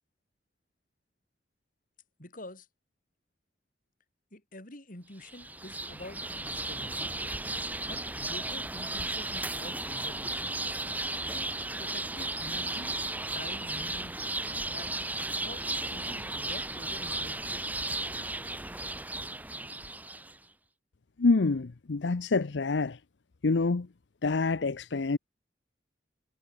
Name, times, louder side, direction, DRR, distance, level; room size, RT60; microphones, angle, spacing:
voice 1, 2.2-2.7 4.3-7.0 7.9-10.5 11.2-13.0 13.3-14.2 14.7-17.6, left 1 dB, 50° left, 6.1 m, -47 dB
sound 1, 5.2-20.4, right 2 dB, 10° right, 2.8 m, -35 dB
voice 2, 21.2-23.0 23.4-23.9 24.2-25.2, left 3 dB, 85° left, 0.7 m, -26 dB
head